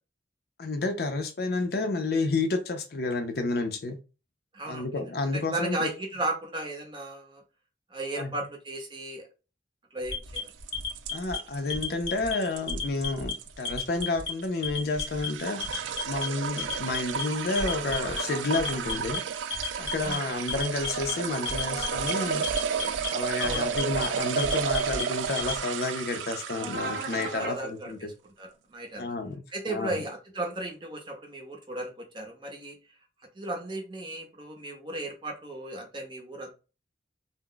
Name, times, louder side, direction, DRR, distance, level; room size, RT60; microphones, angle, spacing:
voice 1, 0.6-4.0 4.7-5.9 8.2-8.5 11.1-15.6 16.1-19.2 19.8-22.4 23.1-28.0 29.0-30.0, left 3 dB, 60° left, 0.5 m, -30 dB
voice 2, 4.5-4.9 5.3-7.4 7.9-9.3 9.9-10.4 20.0-20.4 23.4-23.8 27.4-28.1 28.4-29.1 29.5-32.7 33.4-36.5, right 2 dB, 25° right, 0.6 m, -35 dB
Alarm, 10.1-11.4 11.7-12.3 12.7-13.3 13.7-14.3 14.6-15.3 15.6-16.2 16.6-17.2 17.6-18.2 18.5-19.2 19.5-20.2 20.5-21.1 21.5-22.1 22.4-23.1 23.4-24.1 24.4-25.6, left 4 dB, 85° left, 0.8 m, -33 dB
sound 1, 10.3-27.5, right 7 dB, 90° right, 0.3 m, -33 dB
sound 2, 17.5-19.0 20.6-22.4 26.5-27.6, right 2 dB, 65° right, 0.7 m, -38 dB
2.3 x 2.0 x 3.7 m
head